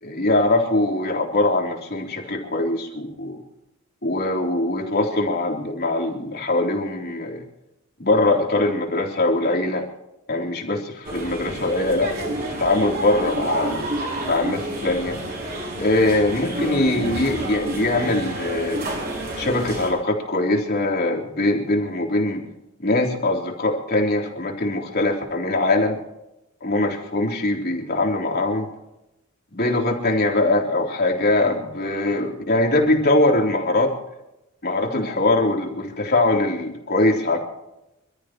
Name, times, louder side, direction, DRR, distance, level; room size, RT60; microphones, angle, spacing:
voice 1, 0.0-3.4 4.0-7.4 8.0-9.9 10.3-12.1 12.4-13.8 14.3-15.2 15.8-18.8 19.4-22.4 22.8-26.0 26.6-28.7 29.5-33.9 34.6-37.4, left 2 dB, 50° left, 0 dB, 3.6 m, -22 dB
sound 1, 11.0-19.9, right 1 dB, 50° right, 5.9 m, -29 dB
27.5 x 13.5 x 3.1 m, 0.91 s
head